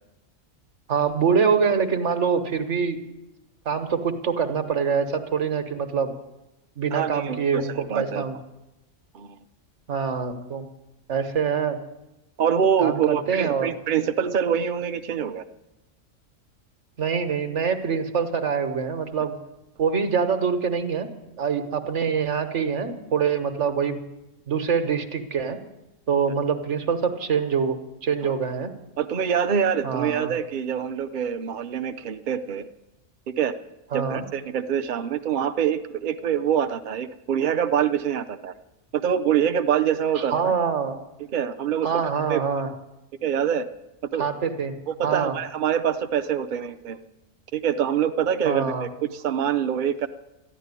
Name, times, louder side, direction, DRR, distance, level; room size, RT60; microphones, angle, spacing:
voice 1, 0.9-3.0 3.7-6.1 6.8-8.4 9.9-10.7 11.1-11.8 12.8-13.7 17.0-19.4 19.8-21.1 21.4-24.0 24.5-25.6 26.1-28.7 29.8-30.3 33.9-34.2 40.2-41.0 41.8-42.7 44.2-44.7 45.0-45.4 48.4-48.9, right 6 dB, 65° right, 8 dB, 1.6 m, -25 dB
voice 2, 6.9-8.2 9.1-9.4 12.4-15.4 28.2-28.3 29.0-32.7 33.4-33.5 33.9-38.5 38.9-40.5 41.3-42.0 42.3-42.4 43.2-43.7 44.1-44.2 44.9-47.0 47.5-50.1, right 8 dB, 50° right, 7 dB, 0.7 m, -25 dB
13.5 x 11.0 x 9.7 m, 0.94 s
omnidirectional pair, 1.3 m